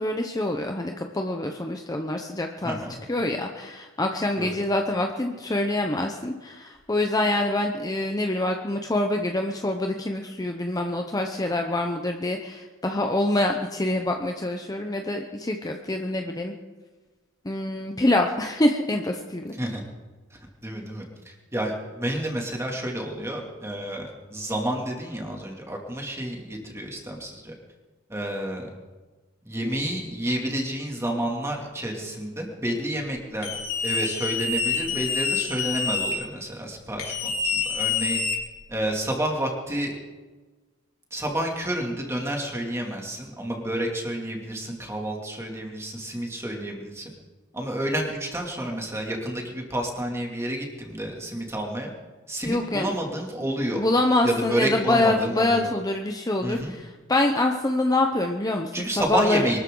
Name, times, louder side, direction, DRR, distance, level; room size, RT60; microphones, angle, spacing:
voice 1, 0.0-16.5 17.4-19.5 52.4-52.9 53.7-59.5, left 1 dB, 20° left, 3 dB, 0.8 m, -25 dB
voice 2, 2.6-3.0 4.4-4.6 19.6-19.8 20.3-27.5 28.1-28.7 29.4-33.5 33.8-38.2 38.7-39.9 41.1-47.1 47.5-51.9 52.3-53.8 54.2-55.7 56.4-56.7 58.7-59.6, right 1 dB, 15° right, 0 dB, 2.6 m, -30 dB
sound 1, 33.4-36.1 37.0-38.8, left 5 dB, 85° left, 3.8 m, -27 dB
24.0 x 13.0 x 3.9 m, 1.3 s
head